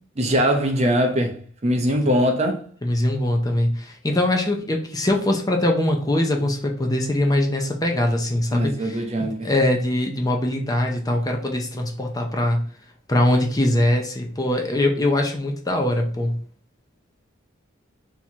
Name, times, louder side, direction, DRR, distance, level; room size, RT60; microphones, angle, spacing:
voice 1, 0.2-1.4 1.6-2.6 8.5-9.5, equal, 30° right, 0.6 m, -21 dB
voice 2, 2.8-12.7 13.1-16.4, left 1 dB, 20° left, 0.6 m, -22 dB
3.5 x 2.9 x 4.3 m
head